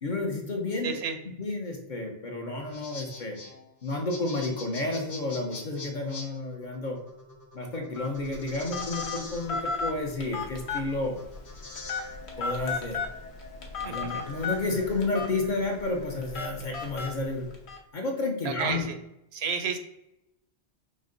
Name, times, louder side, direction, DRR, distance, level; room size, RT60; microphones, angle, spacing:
voice 1, 0.0-0.9 1.4-3.4 3.8-7.0 7.5-11.2 12.4-13.0 13.8-17.5 17.9-18.9, left 2 dB, 50° left, 1 dB, 0.8 m, -31 dB
voice 2, 0.8-1.2 13.9-14.2 18.4-19.0 19.3-19.8, right 6 dB, 75° right, 7 dB, 0.8 m, -31 dB
sound 1, 2.5-17.3, left 2 dB, 25° left, 0.4 m, -45 dB
Telephone, 8.0-17.8, left 4 dB, 75° left, 1.1 m, -36 dB
5.3 x 2.1 x 3.7 m, 0.86 s
omnidirectional pair, 1.1 m